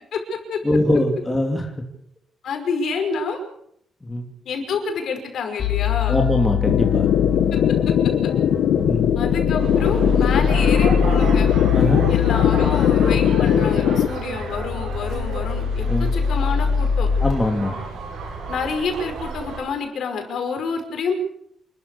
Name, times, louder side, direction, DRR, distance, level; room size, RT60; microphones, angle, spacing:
voice 1, 0.1-0.6 2.4-3.5 4.5-6.2 9.2-11.5 12.1-17.1 18.5-21.1, left 5 dB, 60° left, 5 dB, 5.5 m, -28 dB
voice 2, 0.6-1.7 4.0-4.3 6.1-7.1 8.7-9.1 11.7-12.1 15.9-16.1 17.2-17.8, left 1 dB, 10° left, 1 dB, 3.0 m, -22 dB
sound 1, 5.6-17.3, left 7 dB, 45° left, 5.7 m, -23 dB
sound 2, 6.7-14.1, left 9 dB, 80° left, 1.4 m, -20 dB
sound 3, 9.6-19.6, right 4 dB, 75° right, 7.5 m, -33 dB
27.5 x 13.5 x 8.5 m, 0.73 s
wide cardioid pair, 175°, 0 cm